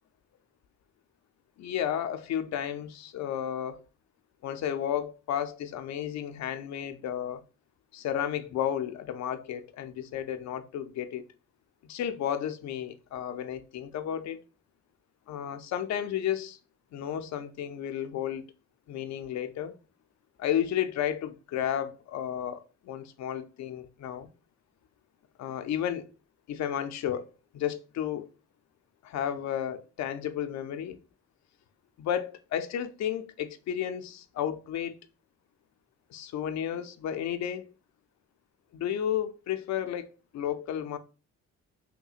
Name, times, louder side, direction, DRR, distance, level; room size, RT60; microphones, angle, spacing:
voice 1, 1.6-3.8 4.4-7.4 7.9-11.2 11.8-14.4 15.3-16.6 16.9-18.5 18.9-19.8 20.4-24.3 25.4-26.1 26.5-28.3 29.0-31.0 32.0-35.0 36.1-37.7 38.7-41.0, left 10 dB, 65° left, 0.5 m, -32 dB
5.6 x 2.2 x 2.4 m
cardioid pair, 90°, 30 cm